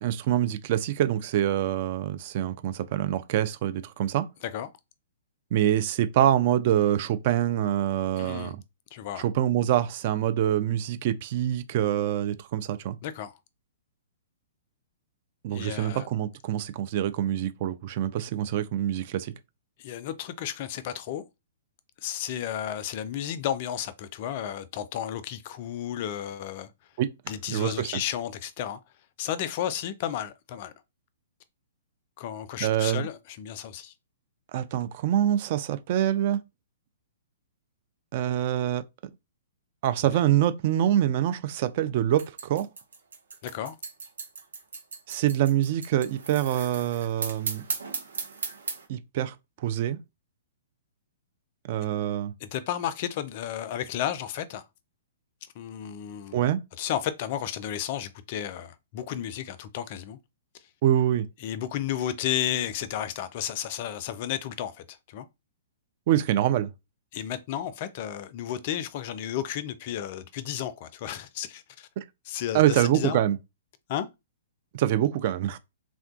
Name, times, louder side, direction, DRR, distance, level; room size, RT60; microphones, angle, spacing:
voice 1, 0.0-4.3 5.5-8.6 9.2-13.0 15.4-19.3 27.0-27.1 27.5-27.9 32.6-33.1 34.5-36.4 38.1-38.8 39.8-42.7 45.1-47.6 48.9-49.3 49.6-50.0 51.7-52.3 56.3-56.6 60.8-61.2 66.1-66.7 72.0-72.1 72.5-73.4 74.7-75.6, right 11 dB, 45° right, 0.3 m, -25 dB
voice 2, 8.2-8.5 8.9-9.2 13.0-13.3 15.5-16.1 19.8-21.2 22.0-26.7 27.3-28.8 29.2-30.7 32.2-33.9 40.0-40.2 43.4-43.8 52.4-54.6 55.6-56.5 56.8-60.2 61.4-65.3 67.1-71.9 72.3-73.2 73.9-74.1, left 10 dB, 40° left, 0.3 m, -33 dB
sound 1, 42.2-48.9, right 4 dB, 70° right, 0.7 m, -37 dB
3.4 x 2.2 x 2.5 m
figure-of-eight pair, 115°, 0 cm